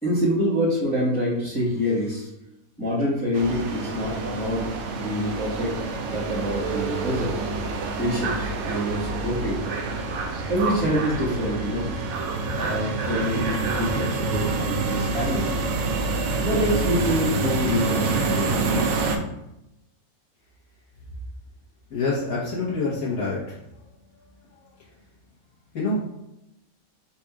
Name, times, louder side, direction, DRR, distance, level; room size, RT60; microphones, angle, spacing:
voice 1, 0.0-2.3 2.8-5.7 6.1-7.4 8.0-9.6 10.5-11.9 12.5-15.8 16.4-19.1, equal, 5° left, -11 dB, 1.1 m, -26 dB
sound 1, 3.3-19.2, right 3 dB, 65° right, 0.8 m, -27 dB
voice 2, 21.9-23.4 25.7-26.0, left 3 dB, 75° left, -7 dB, 1.6 m, -26 dB
4.2 x 2.5 x 4.6 m, 0.88 s
omnidirectional pair, 1.5 m